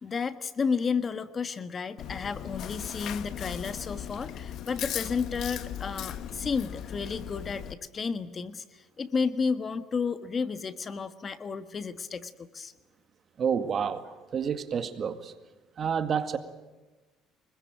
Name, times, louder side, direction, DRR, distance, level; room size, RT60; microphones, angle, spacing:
voice 1, 0.0-8.6 9.0-12.7, left 5 dB, 35° left, 1.4 m, -32 dB
Chewing mastication, 2.0-7.7, left 10 dB, 60° left, 1.3 m, -37 dB
voice 2, 13.4-14.0 14.3-15.3 15.8-16.4, right 7 dB, 45° right, 2.0 m, -29 dB
24.5 x 22.0 x 9.2 m
cardioid pair, 105°, 0 cm